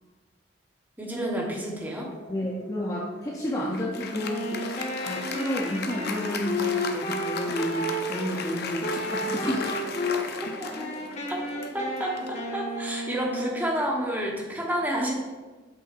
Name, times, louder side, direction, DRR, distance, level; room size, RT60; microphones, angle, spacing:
voice 1, 1.0-2.1 4.5-4.6 5.0-5.2 10.4-10.9 11.3-11.4 11.7-15.1, right 1 dB, 10° right, -1 dB, 1.1 m, -30 dB
sound 1, 1.8-11.8, right 2 dB, 80° right, 0.5 m, -47 dB
voice 2, 2.3-4.5 5.0-9.8, equal, 20° left, -3 dB, 0.6 m, -31 dB
Applause, 3.4-13.2, left 4 dB, 55° left, 0.6 m, -36 dB
Wind instrument woodwind instrument, 4.1-8.3 8.8-10.2 10.6-13.8, left 1 dB, 35° left, 0.9 m, -32 dB
7.7 x 5.7 x 2.5 m, 1.3 s
head